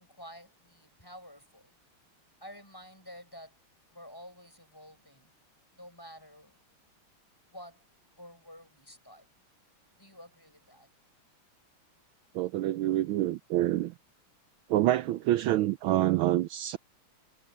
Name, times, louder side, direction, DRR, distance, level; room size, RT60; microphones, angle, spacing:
voice 1, 0.0-1.7 2.4-3.6 3.9-5.3 5.7-6.6 7.5-7.8 8.2-9.3 10.0-10.9, equal, 10° left, 7.5 m, -50 dB
voice 2, 12.3-13.9 14.7-16.8, right 14 dB, 75° right, 1.3 m, -27 dB
omnidirectional pair, 2.4 m